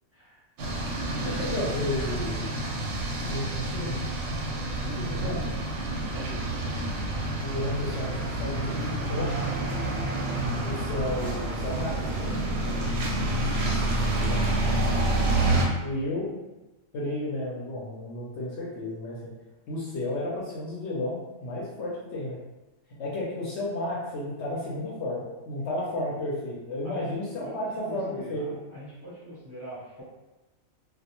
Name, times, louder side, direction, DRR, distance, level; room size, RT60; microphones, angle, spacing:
sound 1, 0.6-15.7, right 2 dB, 65° right, 0.8 m, -28 dB
voice 1, 1.2-2.6 3.2-4.0 4.9-5.4 7.4-9.3 10.5-12.0 14.2-14.4 15.8-16.4 16.9-19.3 19.7-22.4 23.0-28.6, left 1 dB, 65° left, -5 dB, 0.8 m, -32 dB
voice 2, 4.8-5.5 6.1-6.5 9.3-9.8 12.2-13.2 26.8-30.0, equal, 15° right, -10 dB, 0.5 m, -42 dB
2.3 x 2.0 x 2.8 m, 1.1 s
omnidirectional pair, 1.4 m